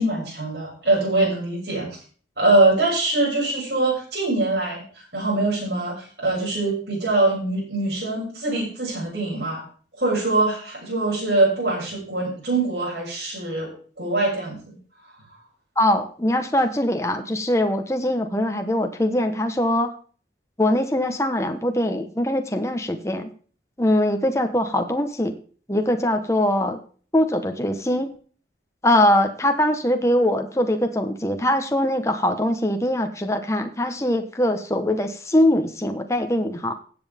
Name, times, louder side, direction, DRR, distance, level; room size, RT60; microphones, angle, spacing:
voice 1, 0.0-1.9 2.4-4.8 5.1-9.6 10.0-13.7 14.0-14.7, right 2 dB, 60° right, -5 dB, 6.5 m, -23 dB
voice 2, 15.8-19.9 20.6-23.3 23.8-25.4 25.7-26.8 27.1-28.1 28.8-36.7, left 1 dB, 15° left, 5 dB, 1.1 m, -22 dB
16.0 x 7.9 x 3.5 m, 0.42 s
head